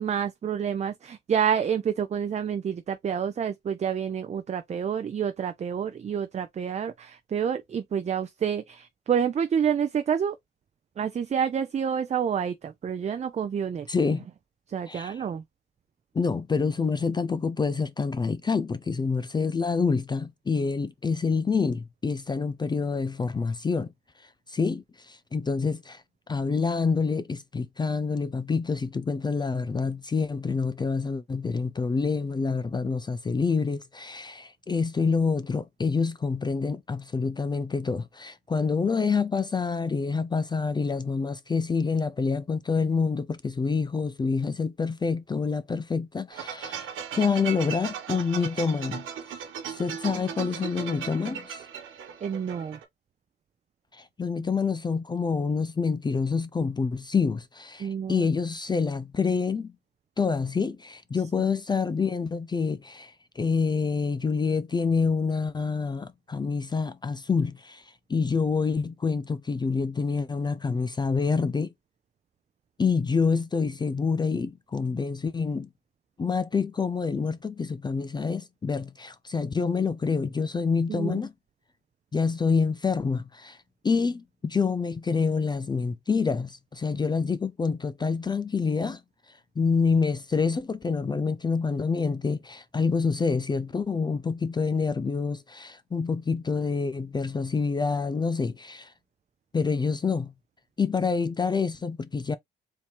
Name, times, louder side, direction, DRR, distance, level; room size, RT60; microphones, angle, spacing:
voice 1, 0.0-10.4 11.0-13.9 14.7-15.4 52.2-52.8 57.8-58.3 80.9-81.2, right 8 dB, 35° right, 0.5 m, -28 dB
voice 2, 13.9-14.3 14.9-15.1 16.1-23.9 24.5-49.1 49.7-51.6 53.9-59.7 60.2-67.8 68.1-71.7 72.8-75.7 76.2-81.3 82.1-83.6 83.8-89.0 89.6-98.9 99.5-100.3 100.8-102.4, left 5 dB, 20° left, 0.4 m, -27 dB
sound 1, 46.3-52.8, right 8 dB, 85° right, 1.3 m, -37 dB
4.4 x 2.8 x 3.2 m
cardioid pair, 90°, 20 cm